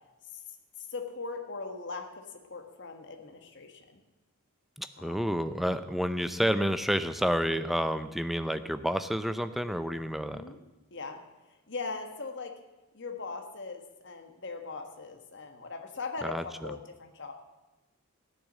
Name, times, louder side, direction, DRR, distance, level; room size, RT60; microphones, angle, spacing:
voice 1, 0.9-4.0 5.0-5.2 10.3-10.6 10.9-12.5 12.9-17.3, left 4 dB, 50° left, 5 dB, 1.5 m, -40 dB
voice 2, 4.8-10.4 16.2-16.8, equal, ahead, 11 dB, 0.5 m, -30 dB
14.0 x 9.7 x 7.4 m, 1.1 s
head